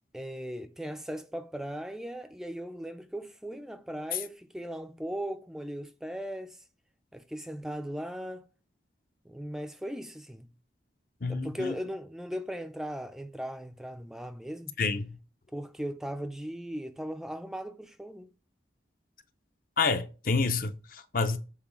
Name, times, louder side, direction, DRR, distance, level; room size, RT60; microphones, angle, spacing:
voice 1, 0.1-6.6 7.1-8.5 9.3-10.5 11.3-14.7 15.5-18.3, equal, 5° right, 0.4 m, -38 dB
voice 2, 11.2-11.8 14.8-15.1 19.8-21.4, left 4 dB, 50° left, 0.7 m, -28 dB
7.4 x 4.0 x 6.0 m
head